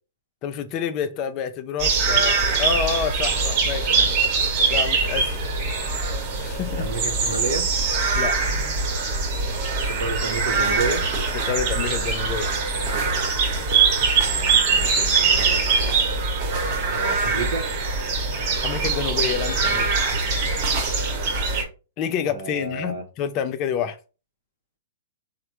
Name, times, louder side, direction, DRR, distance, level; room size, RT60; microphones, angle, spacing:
voice 1, 0.4-4.2 4.7-5.4 6.4-6.9 8.2-8.8 11.5-12.6 18.6-19.9 22.0-24.0, left 7 dB, 35° left, 0.4 m, -28 dB
sound 1, 1.8-21.6, right 4 dB, 45° right, 1.0 m, -22 dB
voice 2, 6.8-7.7 9.9-11.0 14.2-15.8 16.9-17.6 22.3-23.0, right 3 dB, 70° right, 0.8 m, -30 dB
3.2 x 2.1 x 2.9 m
hypercardioid pair, 125°, 0 cm